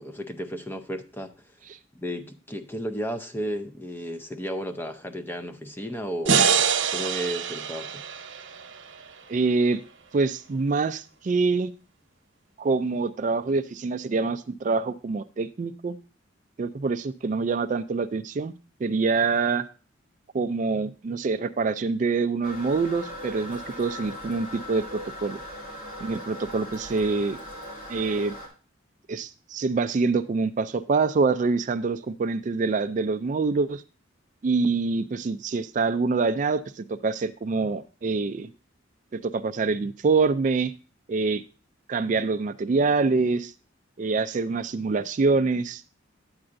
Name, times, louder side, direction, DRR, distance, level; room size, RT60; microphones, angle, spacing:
voice 1, 0.0-1.3 1.9-8.0, equal, 10° left, 0.6 m, -33 dB
sound 1, 6.3-9.5, right 6 dB, 85° right, 1.0 m, -25 dB
voice 2, 9.3-9.8 10.1-11.7 12.6-16.0 16.6-18.5 18.8-19.7 20.3-25.4 26.0-27.4 27.9-28.3 29.1-33.8 34.4-38.5 39.1-40.7 41.1-41.4 41.9-43.5 44.0-45.8, right 4 dB, 40° right, 0.3 m, -25 dB
Toilet flush, 22.4-28.5, left 1 dB, 40° left, 2.5 m, -39 dB
9.6 x 8.7 x 2.6 m
head